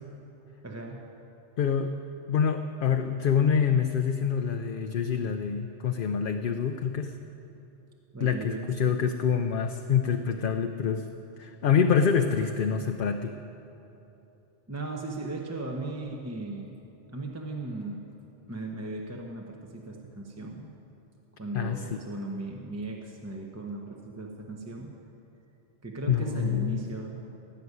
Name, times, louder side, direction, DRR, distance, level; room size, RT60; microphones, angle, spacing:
voice 1, 0.6-1.0 8.1-9.0 14.7-16.8 17.1-18.0 18.5-20.7 21.4-24.9 25.8-27.2, right 2 dB, 15° right, 0 dB, 0.8 m, -37 dB
voice 2, 1.6-7.2 8.2-11.1 11.4-13.4 21.5-21.9 26.1-26.9, left 7 dB, 60° left, 6 dB, 0.7 m, -26 dB
16.0 x 6.8 x 9.6 m, 3.0 s
omnidirectional pair, 1.2 m